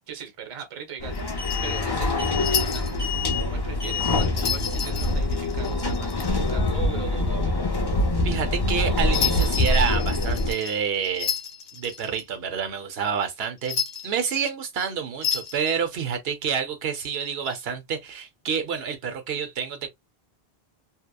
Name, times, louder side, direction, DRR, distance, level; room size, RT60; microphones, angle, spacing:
voice 1, 0.1-7.6, right 8 dB, 35° right, 0.7 m, -40 dB
sound 1, 1.0-10.5, left 2 dB, 30° left, 0.5 m, -24 dB
sound 2, 1.1-3.1 4.2-6.5 9.1-12.2 13.6-14.4 15.2-15.8 17.0-17.6, left 8 dB, 70° left, 0.9 m, -31 dB
voice 2, 8.2-11.3 11.7-19.9, right 7 dB, 75° right, 0.9 m, -28 dB
2.8 x 2.1 x 2.2 m
omnidirectional pair, 1.1 m